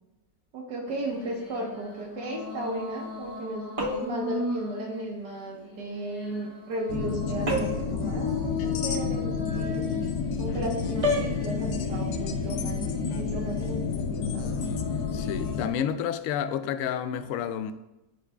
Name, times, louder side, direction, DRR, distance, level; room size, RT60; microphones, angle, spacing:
voice 1, 0.5-3.6 3.9-9.9 10.4-14.5, right 2 dB, 70° right, 1.7 m, -35 dB
sound 1, 0.9-15.9, left 5 dB, 50° left, 1.8 m, -38 dB
sound 2, 3.8-4.3 7.5-7.9 11.0-11.4, left 1 dB, 35° right, 0.5 m, -28 dB
sound 3, 6.9-15.7, left 5 dB, 70° left, 1.2 m, -30 dB
voice 2, 15.1-17.7, left 9 dB, 90° left, 0.7 m, -30 dB
14.0 x 4.9 x 2.3 m
omnidirectional pair, 1.9 m